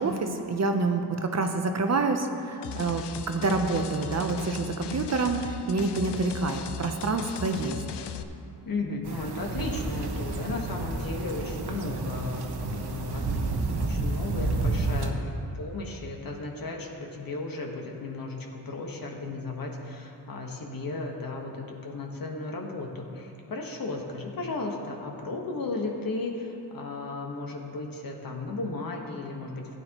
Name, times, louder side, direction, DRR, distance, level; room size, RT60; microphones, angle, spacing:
voice 1, 0.0-7.8, right 3 dB, 40° right, 5 dB, 0.8 m, -27 dB
sound 1, 2.6-8.2, left 7 dB, 80° left, 0.6 m, -37 dB
voice 2, 8.6-15.2 15.5-29.7, left 3 dB, 55° left, 1 dB, 1.4 m, -35 dB
sound 2, 9.0-15.1, right 3 dB, 70° right, 1.0 m, -30 dB
16.0 x 9.4 x 3.0 m, 2.8 s
cardioid pair, 105°, 41 cm